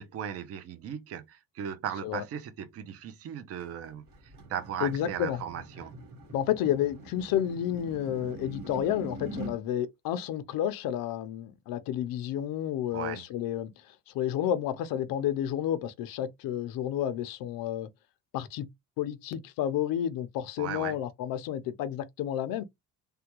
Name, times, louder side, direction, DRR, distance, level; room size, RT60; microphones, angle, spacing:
voice 1, 0.0-4.0 4.5-5.9 12.9-13.2 20.6-21.0, right 9 dB, 45° right, 0.6 m, -37 dB
sound 1, 3.6-9.6, right 2 dB, 75° right, 1.5 m, -43 dB
voice 2, 4.8-5.4 6.3-13.7 14.1-17.9 18.3-18.7 19.0-22.6, left 10 dB, 85° left, 0.6 m, -31 dB
3.3 x 2.2 x 2.9 m
cardioid pair, 170°, 34 cm